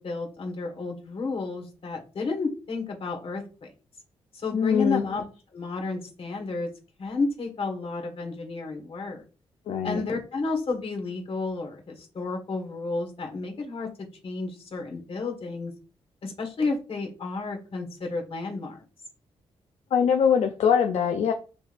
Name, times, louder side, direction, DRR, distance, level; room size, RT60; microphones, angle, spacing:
voice 1, 0.0-3.7 4.3-5.2 5.5-6.7 7.0-9.2 9.8-15.7 16.2-18.8, left 3 dB, 55° left, 1.5 m, -31 dB
voice 2, 4.5-5.0 9.7-10.0 19.9-21.3, left 7 dB, 75° left, 0.5 m, -22 dB
6.0 x 3.5 x 2.5 m
cardioid pair, 75°, 11 cm